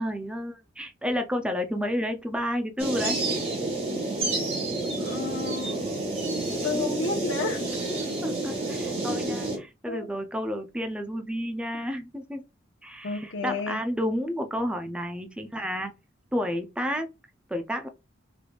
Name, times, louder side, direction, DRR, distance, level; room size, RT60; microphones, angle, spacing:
voice 1, 0.0-3.2 6.4-6.9 8.2-12.4 12.8-15.9 16.3-17.1 17.5-17.9, equal, 5° right, 0.4 m, -31 dB
sound 1, 2.8-9.6, right 2 dB, 30° right, 2.2 m, -29 dB
voice 2, 5.0-6.0 6.6-7.8 9.9-10.1 13.0-13.8, left 4 dB, 70° left, 0.9 m, -32 dB
5.0 x 3.3 x 2.3 m
head